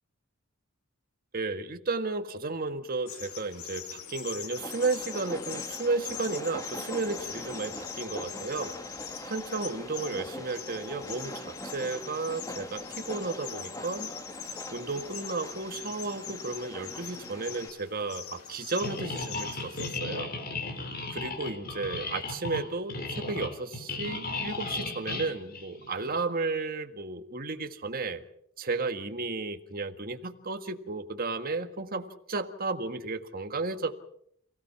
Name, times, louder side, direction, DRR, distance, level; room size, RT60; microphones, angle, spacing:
voice 1, 1.3-8.8 9.2-14.1 14.7-20.3 21.1-28.2 28.6-34.0, right 3 dB, 40° right, 7 dB, 1.7 m, -33 dB
sound 1, 3.1-20.0, left 8 dB, 75° left, 3.0 m, -43 dB
Train, 4.6-17.7, left 1 dB, 15° left, 1.6 m, -42 dB
sound 2, 18.8-26.2, left 3 dB, 40° left, 3.3 m, -36 dB
29.0 x 17.5 x 5.9 m, 0.68 s
head